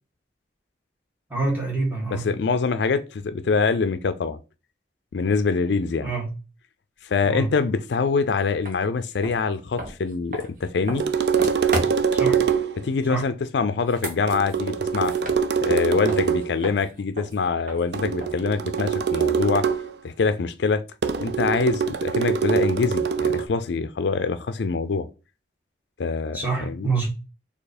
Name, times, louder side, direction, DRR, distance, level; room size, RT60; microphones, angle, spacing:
voice 1, 1.3-2.2 6.0-6.3 7.2-7.5 12.1-12.4 13.1-13.3 26.3-27.1, right 3 dB, 10° right, 1.7 m, -26 dB
voice 2, 2.1-4.4 5.1-6.1 7.0-11.1 12.8-15.1 15.6-19.7 20.0-20.8 21.2-25.1 26.0-26.9, left 4 dB, 75° left, 0.4 m, -24 dB
sound 1, 8.6-8.8 9.2-12.2 13.7-15.8 16.1-19.1, right 1 dB, 50° right, 1.2 m, -35 dB
sound 2, 10.9-12.9 14.3-16.6 17.9-19.9 21.0-23.4, right 6 dB, 65° right, 0.4 m, -24 dB
4.5 x 2.8 x 4.2 m
head